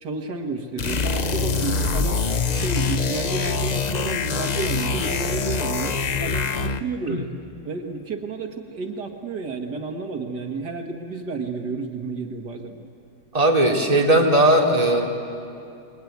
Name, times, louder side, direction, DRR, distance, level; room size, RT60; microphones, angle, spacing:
voice 1, 0.0-2.2 2.5-7.3 7.6-12.9, right 3 dB, 75° right, 4 dB, 2.1 m, -31 dB
sound 1, 0.8-6.9, left 4 dB, 65° left, 0.4 m, -24 dB
voice 2, 13.3-15.0, right 1 dB, 20° right, -1 dB, 2.9 m, -18 dB
28.0 x 22.5 x 9.3 m, 2.7 s
omnidirectional pair, 1.8 m